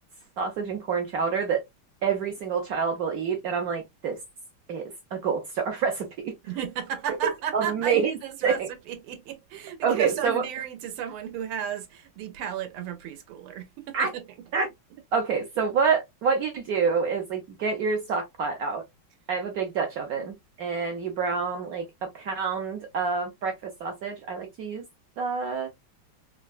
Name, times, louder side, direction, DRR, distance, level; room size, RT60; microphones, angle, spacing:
voice 1, 0.4-1.6 2.0-4.2 4.7-6.1 7.5-8.1 8.4-8.7 9.8-10.4 13.9-14.1 14.5-14.7 15.1-18.8 19.3-24.8 25.2-25.7, right 5 dB, 70° right, 0.9 m, -27 dB
voice 2, 6.4-8.6 8.9-14.5 20.2-20.3, right 9 dB, 85° right, 1.6 m, -34 dB
4.3 x 2.2 x 2.3 m
omnidirectional pair, 2.3 m